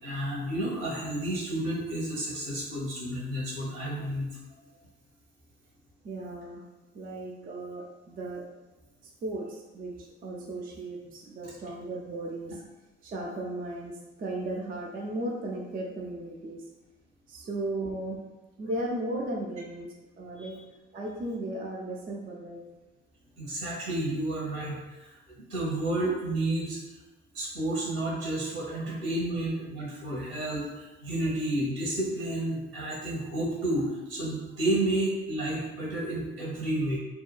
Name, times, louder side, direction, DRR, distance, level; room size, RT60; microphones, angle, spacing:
voice 1, 0.0-4.3 20.4-20.5 23.4-25.2 25.5-26.8 27.3-37.0, right 1 dB, 70° right, -5 dB, 1.2 m, -31 dB
voice 2, 6.0-6.6 6.9-8.4 9.2-12.6 13.0-16.6 17.3-18.2 18.6-20.6 20.9-22.6 28.8-28.9 29.3-29.4 30.0-30.2, right 1 dB, 25° right, -1 dB, 0.4 m, -36 dB
2.7 x 2.2 x 2.2 m, 1.1 s
figure-of-eight pair, 50°, 33 cm